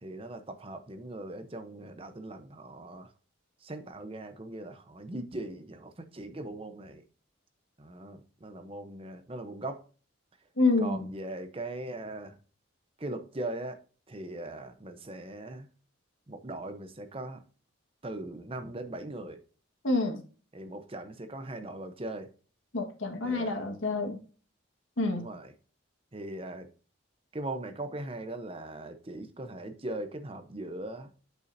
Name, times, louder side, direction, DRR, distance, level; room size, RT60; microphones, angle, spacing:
voice 1, 0.0-3.1 3.6-7.0 7.8-9.8 10.8-12.4 13.0-15.7 16.3-17.4 18.0-19.4 20.5-22.3 23.2-23.7 25.2-25.5 26.1-26.7 27.3-31.1, right 1 dB, 30° right, 0.8 m, -40 dB
voice 2, 10.6-11.0 19.8-20.2 22.7-24.2 25.0-25.3, left 3 dB, 75° left, 1.6 m, -27 dB
8.4 x 6.8 x 2.7 m
head